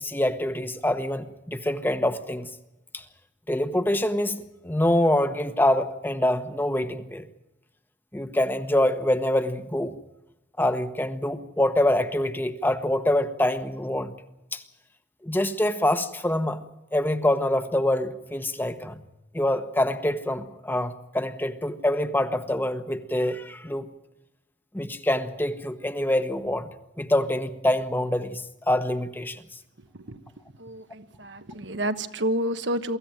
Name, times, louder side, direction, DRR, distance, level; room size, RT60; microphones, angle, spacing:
voice 1, 0.0-2.5 2.9-3.0 3.5-7.3 8.1-9.9 10.6-14.1 14.5-14.6 15.2-16.6 16.9-19.0 19.3-23.9 24.7-26.7 27.0-29.4, left 1 dB, 10° left, 9 dB, 1.1 m, -25 dB
voice 2, 30.6-33.0, right 1 dB, 75° right, 9 dB, 1.2 m, -29 dB
24.0 x 15.0 x 9.1 m, 0.96 s
head